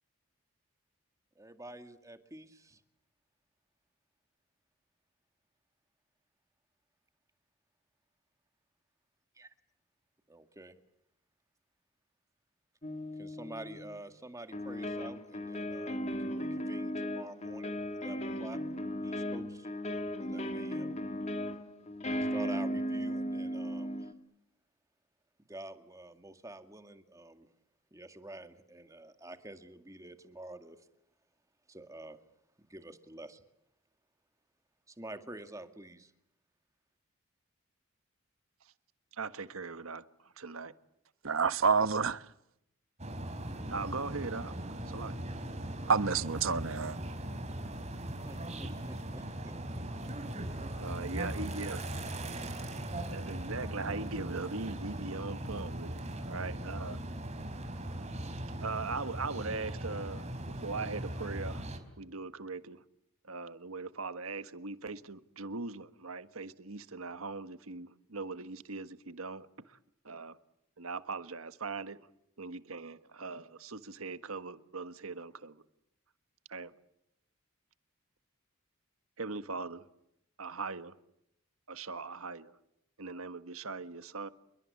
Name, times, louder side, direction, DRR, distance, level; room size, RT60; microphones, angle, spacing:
voice 1, 1.4-2.8 9.4-9.5 10.3-10.7 13.2-18.6 19.0-19.7 20.2-20.9 22.1-24.1 25.5-27.5 27.9-30.8 31.7-32.2 32.7-33.4 34.9-36.1 48.3-49.5, right 1 dB, 15° right, 2.0 m, -48 dB
sound 1, 12.8-14.0 14.5-24.1, equal, 30° left, 2.0 m, -36 dB
voice 2, 39.2-40.0 40.4-40.7 43.7-44.5 44.9-45.1 50.8-51.8 53.1-56.9 58.6-60.3 60.6-61.6 62.0-62.8 63.3-69.5 70.0-70.4 70.8-72.0 72.4-75.6 76.5-76.7 79.2-79.8 80.4-80.9 81.7-82.5 83.0-84.3, right 3 dB, 85° right, 1.5 m, -40 dB
voice 3, 41.2-42.2 45.9-47.0, right 5 dB, 70° right, 1.1 m, -28 dB
sound 2, 43.0-61.8, right 1 dB, 30° right, 4.0 m, -39 dB
29.0 x 22.5 x 8.5 m
head